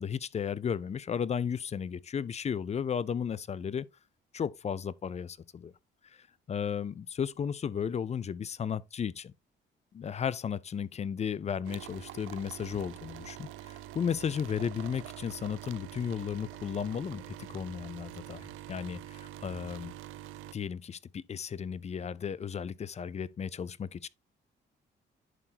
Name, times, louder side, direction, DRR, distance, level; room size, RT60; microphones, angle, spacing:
voice 1, 0.0-3.9 4.3-5.7 6.5-9.3 9.9-19.9 20.5-24.1, left 7 dB, 35° left, 0.5 m, -34 dB
sound 1, 11.6-20.5, right 13 dB, 85° right, 0.5 m, -45 dB
11.0 x 3.8 x 2.8 m
cardioid pair, 90°, 20 cm